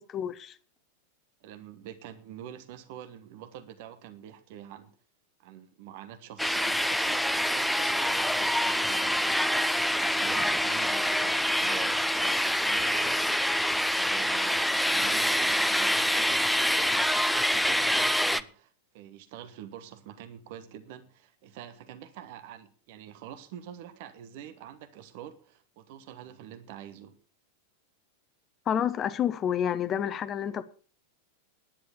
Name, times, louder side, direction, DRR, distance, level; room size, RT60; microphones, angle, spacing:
voice 1, 0.1-0.6 28.7-30.6, left 9 dB, 30° left, 0.9 m, -29 dB
voice 2, 1.4-4.9 5.4-9.5 9.9-13.3 13.9-27.2, right 10 dB, 50° right, 1.2 m, -46 dB
sound 1, 6.4-18.4, equal, ahead, 0.6 m, -26 dB
10.5 x 10.0 x 6.5 m
figure-of-eight pair, 90°, 0 cm